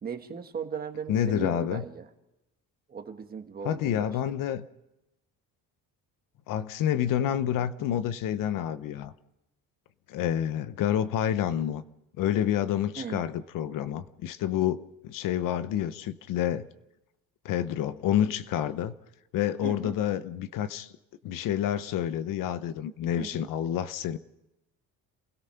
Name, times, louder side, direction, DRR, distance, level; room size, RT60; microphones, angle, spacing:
voice 1, 0.0-2.0 2.9-4.1 13.0-13.2 19.6-20.0 23.2-23.5, right 6 dB, 25° right, 1.5 m, -37 dB
voice 2, 1.1-1.8 3.6-4.6 6.5-9.1 10.1-11.8 12.2-16.7 17.4-18.9 19.3-20.9 21.2-24.2, left 10 dB, 65° left, 0.9 m, -28 dB
27.5 x 17.5 x 5.7 m
cardioid pair, 170°, 35 cm